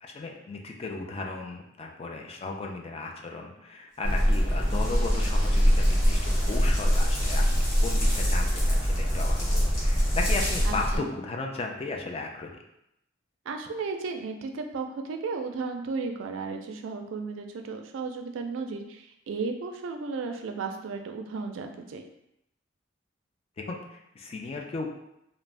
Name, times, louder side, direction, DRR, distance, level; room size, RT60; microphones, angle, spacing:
voice 1, 0.0-7.5 7.8-12.5 23.6-25.0, left 3 dB, 30° left, 1 dB, 0.3 m, -35 dB
sound 1, 4.0-11.0, equal, 5° right, 0.9 m, -24 dB
sound 2, 4.1-10.9, left 1 dB, 50° left, 0.9 m, -37 dB
voice 2, 10.6-11.1 13.5-22.0, right 4 dB, 80° right, 5 dB, 0.4 m, -34 dB
2.5 x 2.0 x 3.2 m, 0.82 s
head